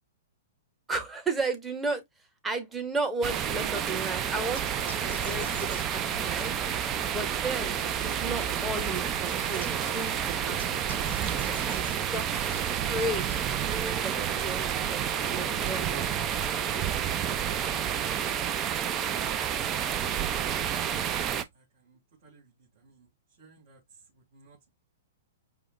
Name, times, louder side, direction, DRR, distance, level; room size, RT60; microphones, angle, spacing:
voice 1, 0.9-2.0 2.4-6.5 7.0-9.7 9.9-10.8 11.3-12.4 12.9-13.3 13.8-16.1 16.7-17.3, right 2 dB, 10° right, 1.0 m, -34 dB
sound 1, 3.2-21.4, right 9 dB, 30° right, 0.4 m, -30 dB
sound 2, 4.0-18.0, left 8 dB, 25° left, 0.5 m, -49 dB
Bird, 4.2-13.9, left 6 dB, 75° left, 0.7 m, -47 dB
voice 2, 20.0-24.7, right 5 dB, 60° right, 2.2 m, -55 dB
4.8 x 2.1 x 2.4 m
hypercardioid pair, 120°, 0 cm